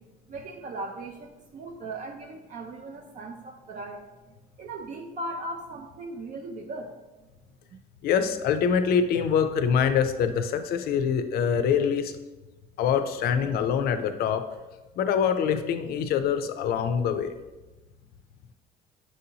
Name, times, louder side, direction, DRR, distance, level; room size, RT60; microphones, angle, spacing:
voice 1, 0.0-4.1 4.6-7.0, right 2 dB, 45° right, 3 dB, 0.4 m, -38 dB
voice 2, 8.0-12.1 12.8-14.4 15.0-17.3, left 7 dB, 65° left, 9 dB, 0.4 m, -24 dB
6.2 x 2.7 x 2.8 m, 1.1 s
cardioid pair, 110°, 17 cm